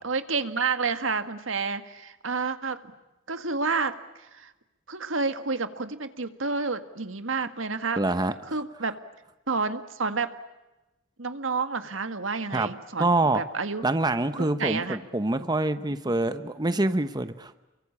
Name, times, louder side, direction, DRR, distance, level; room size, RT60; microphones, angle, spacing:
voice 1, 0.0-2.8 3.3-4.5 4.9-8.0 8.5-8.9 9.5-10.3 11.2-13.8 14.4-15.0, right 4 dB, 80° right, 9 dB, 1.8 m, -29 dB
voice 2, 8.0-8.6 12.5-12.7 13.0-13.4 13.8-17.6, right 2 dB, 20° right, 11 dB, 0.9 m, -26 dB
30.0 x 23.0 x 8.6 m, 1.0 s
head